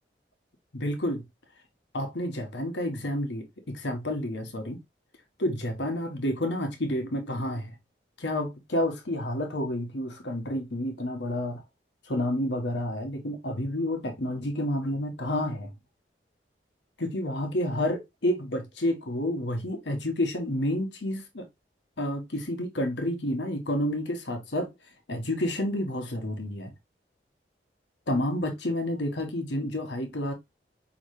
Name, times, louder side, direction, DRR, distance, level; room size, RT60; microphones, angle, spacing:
voice 1, 0.7-1.2 1.9-4.8 5.4-7.8 8.2-11.6 12.0-15.7 17.0-21.5 22.0-24.7 25.1-26.7 28.1-30.3, left 1 dB, 85° left, 1.2 m, -30 dB
5.4 x 3.1 x 3.0 m
head